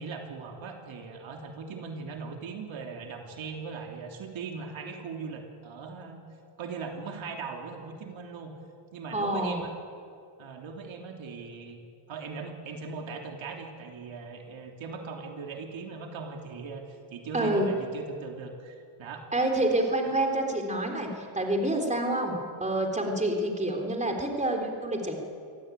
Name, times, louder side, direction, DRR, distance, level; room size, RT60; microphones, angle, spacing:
voice 1, 0.0-6.2 6.6-8.5 8.9-9.7 10.4-11.8 12.1-19.3, right 4 dB, 70° right, 2 dB, 3.3 m, -39 dB
voice 2, 9.1-9.6 17.3-17.7 19.3-25.2, right 1 dB, 15° right, 2 dB, 3.6 m, -28 dB
26.0 x 17.5 x 9.2 m, 2.4 s
cardioid pair, 115°, 47 cm